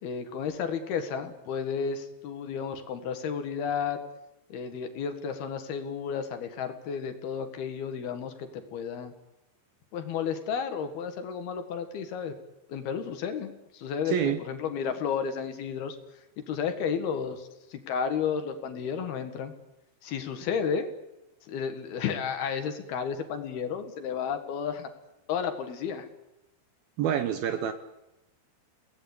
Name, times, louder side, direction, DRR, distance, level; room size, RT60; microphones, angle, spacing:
voice 1, 0.0-4.0 4.5-9.1 9.9-12.3 12.7-16.0 16.4-19.5 20.0-20.9 21.5-24.9 25.3-26.1, left 7 dB, 65° left, 7 dB, 3.3 m, -32 dB
voice 2, 14.1-14.4 27.0-27.7, right 9 dB, 70° right, 9 dB, 2.5 m, -27 dB
30.0 x 18.5 x 8.6 m, 0.95 s
omnidirectional pair, 5.3 m